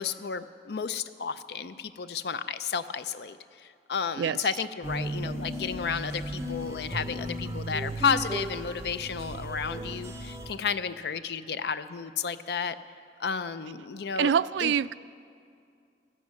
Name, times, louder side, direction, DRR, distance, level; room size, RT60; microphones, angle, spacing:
voice 1, 0.0-12.8 13.2-14.3 14.6-14.7, left 6 dB, 70° left, 12 dB, 0.5 m, -32 dB
sound 1, 4.8-10.6, equal, 15° right, 0.5 m, -35 dB
voice 2, 14.2-14.9, right 7 dB, 90° right, 18 dB, 0.3 m, -25 dB
14.0 x 12.0 x 7.5 m, 2.3 s
head